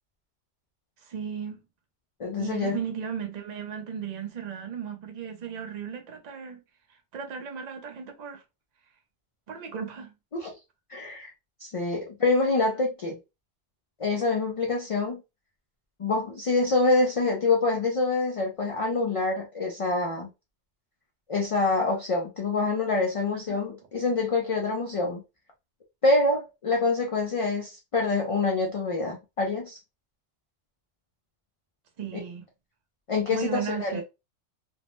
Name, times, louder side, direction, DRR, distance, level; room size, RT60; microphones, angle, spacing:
voice 1, 1.0-1.6 2.4-6.6 6.9-8.4 9.5-10.1 23.5-23.6 32.0-32.5 33.3-34.0, right 7 dB, 45° right, 0.6 m, -35 dB
voice 2, 2.2-2.8 10.3-10.5 10.9-11.3 11.6-13.2 14.0-15.2 16.0-20.3 21.3-25.2 26.0-29.8 33.1-34.0, left 3 dB, 50° left, 0.4 m, -26 dB
2.6 x 2.1 x 2.9 m
omnidirectional pair, 1.2 m